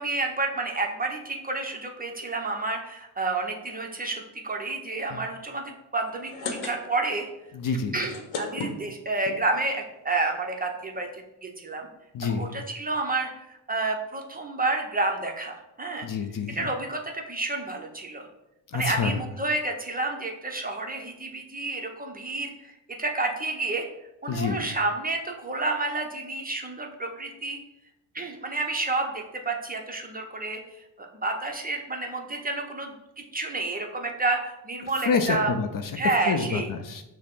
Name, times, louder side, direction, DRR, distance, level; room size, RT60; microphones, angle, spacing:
voice 1, 0.0-7.3 7.9-11.9 12.2-16.1 16.5-18.3 18.7-23.9 24.2-27.6 28.1-32.9 33.3-35.5 36.0-36.7, right 2 dB, 20° right, 2 dB, 0.6 m, -30 dB
sound 1, 6.1-7.2 7.5-7.6 7.9-9.4 10.1-10.2 10.4-10.5 10.7-10.9, left 4 dB, 80° left, 0.8 m, -34 dB
voice 2, 7.5-8.0 12.1-12.5 16.0-16.7 18.7-19.2 24.3-24.6 35.1-35.7 36.3-37.0, left 5 dB, 45° left, 6 dB, 0.5 m, -27 dB
6.3 x 2.1 x 3.6 m, 0.91 s
cardioid pair, 85°, 47 cm